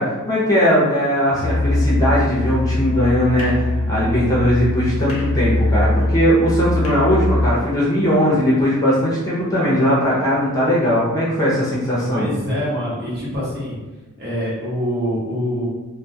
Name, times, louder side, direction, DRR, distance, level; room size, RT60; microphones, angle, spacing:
voice 1, 0.0-12.3, equal, 15° left, -7 dB, 0.6 m, -19 dB
Musical instrument, 1.3-7.6, left 2 dB, 90° left, 0.5 m, -21 dB
voice 2, 12.1-13.7 14.2-15.7, equal, 50° right, -8 dB, 1.0 m, -25 dB
2.2 x 2.1 x 2.6 m, 1.2 s
head